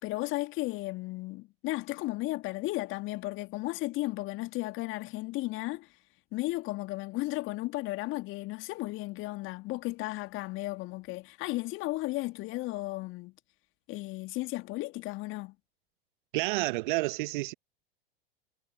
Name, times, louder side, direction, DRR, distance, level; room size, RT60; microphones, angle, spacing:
voice 1, 0.0-5.9 6.3-13.3 13.9-15.5, left 20 dB, 40° left, 2.3 m, -34 dB
voice 2, 16.3-17.5, right 21 dB, 55° right, 1.4 m, -29 dB
figure-of-eight pair, 90°, 30 cm